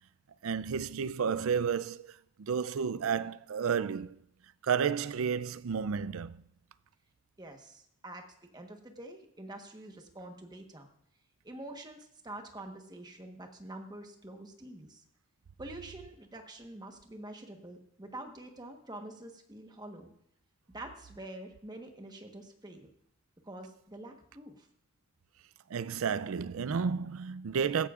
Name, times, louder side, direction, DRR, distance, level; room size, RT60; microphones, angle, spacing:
voice 1, 0.4-4.2 4.6-6.4 25.7-27.9, right 6 dB, 85° right, 0.4 m, -31 dB
voice 2, 7.4-8.2 8.5-10.9 11.4-15.0 15.6-20.1 20.7-22.9 23.4-24.7, right 1 dB, 20° right, 1.2 m, -46 dB
16.5 x 13.5 x 2.5 m
head